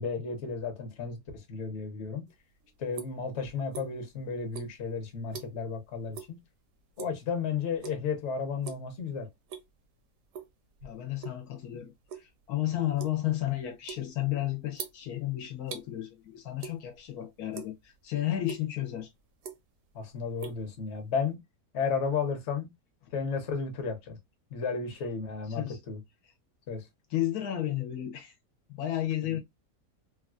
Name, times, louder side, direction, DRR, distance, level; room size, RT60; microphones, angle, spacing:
voice 1, 0.0-2.3 2.8-6.4 7.0-9.3 19.9-21.4 21.7-22.7 23.1-24.2 24.5-26.0 26.7-26.8 29.3-29.4, left 5 dB, 55° left, 1.0 m, -33 dB
sound 1, 2.3-4.2 4.5-5.8 6.1-6.4 6.7-7.3 7.8-8.2 8.5-8.9 9.3-9.9 10.3-11.4 11.8-15.9 16.6-17.1 17.4-18.0 18.5-18.6 19.2-19.9 20.1-21.3, right 7 dB, 65° right, 0.8 m, -44 dB
voice 2, 10.8-19.1 25.5-25.8 26.2-26.3 27.1-28.3 28.7-29.4, left 13 dB, 75° left, 1.1 m, -32 dB
3.1 x 2.3 x 2.3 m
omnidirectional pair, 1.7 m